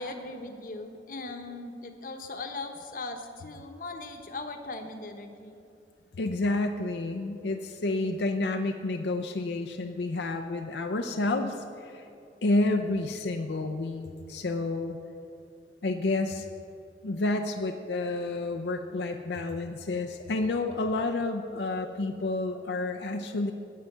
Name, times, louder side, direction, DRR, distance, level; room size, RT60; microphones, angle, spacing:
voice 1, 0.0-5.5, left 2 dB, 50° left, 5 dB, 1.0 m, -39 dB
voice 2, 6.2-12.1 12.4-15.0 15.8-16.5 17.0-23.5, left 2 dB, 80° left, 4 dB, 0.6 m, -30 dB
16.5 x 5.7 x 7.3 m, 2.7 s
head